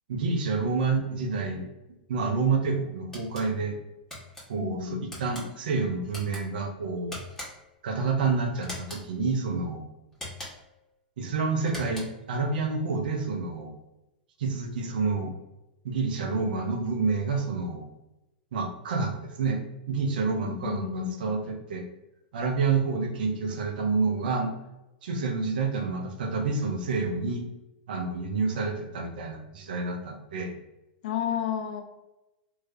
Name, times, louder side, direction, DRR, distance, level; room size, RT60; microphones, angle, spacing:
voice 1, 0.1-1.6 2.1-3.8 4.5-7.1 7.8-9.8 11.2-13.8 14.4-15.3 15.8-17.9 18.5-21.8 22.3-24.5 25.0-27.4 27.9-30.5, right 4 dB, 65° right, 3 dB, 0.7 m, -28 dB
sound 1, 3.1-3.5 4.1-4.4 5.1-5.5 6.1-6.4 7.1-7.7 8.6-9.1 10.1-10.7 11.6-12.3, left 1 dB, 10° left, 1.4 m, -40 dB
voice 2, 4.6-5.1 20.4-21.2 31.0-31.8, left 9 dB, 60° left, 5 dB, 0.6 m, -32 dB
3.1 x 2.8 x 2.5 m, 0.94 s
hypercardioid pair, 105°, 5 cm